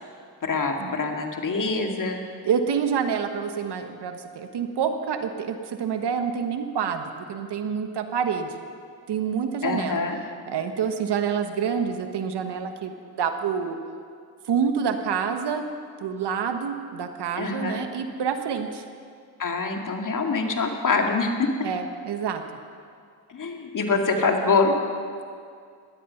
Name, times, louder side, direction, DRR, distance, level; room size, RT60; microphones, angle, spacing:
voice 1, 0.4-2.2 9.6-10.2 17.4-17.8 19.4-21.5 23.3-24.8, left 4 dB, 40° left, 3 dB, 2.3 m, -25 dB
voice 2, 2.4-8.5 9.1-10.0 10.5-13.8 14.5-15.6 16.0-18.8 21.6-22.4 23.9-24.0, right 7 dB, 60° right, 7 dB, 1.4 m, -27 dB
17.5 x 12.5 x 5.8 m, 2.2 s
supercardioid pair, 65°, 46 cm